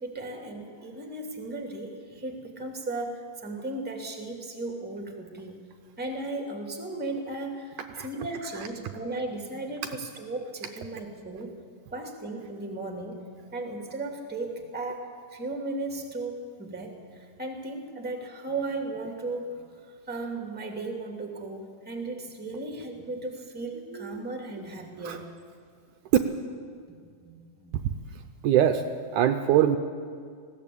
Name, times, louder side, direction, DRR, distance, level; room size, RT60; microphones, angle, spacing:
voice 1, 0.0-5.6 6.0-11.6 11.9-13.2 13.5-19.6 19.9-25.3 27.2-27.7, right 2 dB, 5° right, 2 dB, 1.8 m, -36 dB
voice 2, 28.4-28.8 29.1-29.8, right 11 dB, 75° right, 7 dB, 2.0 m, -23 dB
20.0 x 16.0 x 8.6 m, 2.1 s
omnidirectional pair, 3.9 m